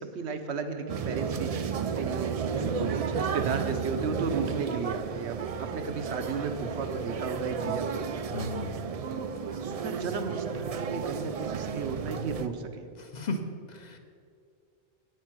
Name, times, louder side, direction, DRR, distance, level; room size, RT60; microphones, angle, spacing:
voice 1, 0.0-8.1 9.0-9.3 9.6-12.9, right 5 dB, 80° right, 7 dB, 1.2 m, -34 dB
sound 1, 0.9-12.5, right 6 dB, 55° right, 0.4 m, -33 dB
voice 2, 2.6-2.9 8.3-8.8 13.0-13.4 13.7-14.0, left 3 dB, 40° left, 5 dB, 1.0 m, -35 dB
9.3 x 9.0 x 6.2 m, 2.4 s
omnidirectional pair, 1.1 m